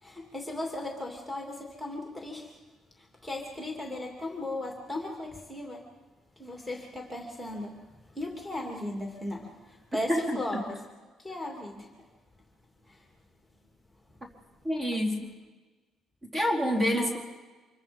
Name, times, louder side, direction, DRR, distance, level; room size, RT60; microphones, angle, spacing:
voice 1, 0.0-2.6 3.0-5.8 6.4-7.7 8.1-10.8 11.2-11.9 12.9-13.0 16.9-17.2, left 1 dB, ahead, 1 dB, 2.9 m, -37 dB
voice 2, 10.1-10.6 14.6-15.4 16.3-17.2, equal, 30° right, 0 dB, 4.3 m, -28 dB
26.0 x 23.0 x 5.4 m, 1.3 s
cardioid pair, 105°, 0 cm